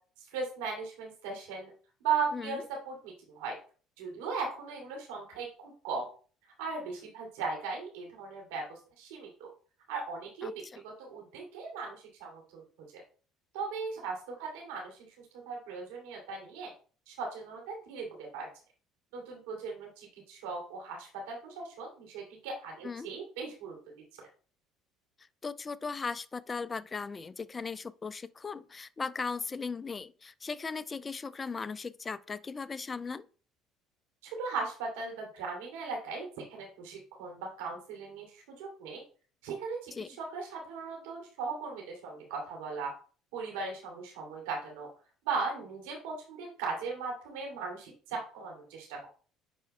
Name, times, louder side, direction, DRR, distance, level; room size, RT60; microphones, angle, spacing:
voice 1, 0.2-1.7 2.0-3.5 4.0-6.1 6.6-9.5 9.9-10.5 10.8-12.6 12.9-13.0 13.5-15.0 15.3-16.7 17.1-18.5 19.1-23.8 34.2-39.0 39.4-42.9 43.3-44.9 45.2-49.1, right 4 dB, 85° right, 2.6 m, -38 dB
voice 2, 10.4-10.8 22.8-23.1 25.4-33.3 39.9-40.1, left 4 dB, 30° left, 0.5 m, -38 dB
9.9 x 4.7 x 2.2 m
supercardioid pair, 75°, 0 cm